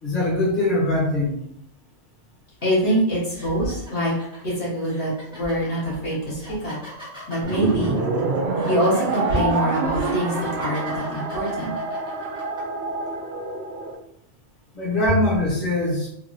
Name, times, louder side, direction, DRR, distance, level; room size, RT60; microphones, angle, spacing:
voice 1, 0.0-1.4 14.7-16.1, left 1 dB, 35° left, -7 dB, 1.3 m, -22 dB
voice 2, 2.6-4.1 4.4-6.8 7.3-8.0 8.6-11.7, equal, 60° left, -7 dB, 1.6 m, -24 dB
sound 1, 2.6-2.8 3.3-12.6, equal, 5° right, 1.0 m, -41 dB
sound 2, 7.4-14.0, right 3 dB, 65° right, 0.7 m, -26 dB
3.6 x 2.7 x 2.6 m, 0.75 s
omnidirectional pair, 1.3 m